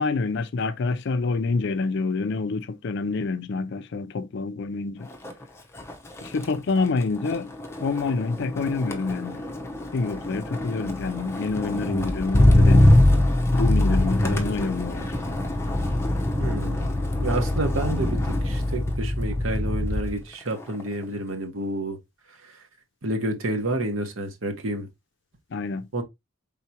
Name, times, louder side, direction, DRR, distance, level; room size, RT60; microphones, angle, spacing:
voice 1, 0.0-5.1 6.2-7.5 7.8-9.4 9.9-13.0 13.5-15.1 25.5-25.9, left 4 dB, 60° left, 0.4 m, -27 dB
Motor vehicle (road), 5.1-5.4 5.8-20.2 20.6-21.0, left 1 dB, 15° left, 0.8 m, -23 dB
voice 2, 16.4-22.0 22.3-22.7 23.0-24.9 25.9-26.0, right 1 dB, 80° right, 1.1 m, -29 dB
4.7 x 3.7 x 2.8 m
head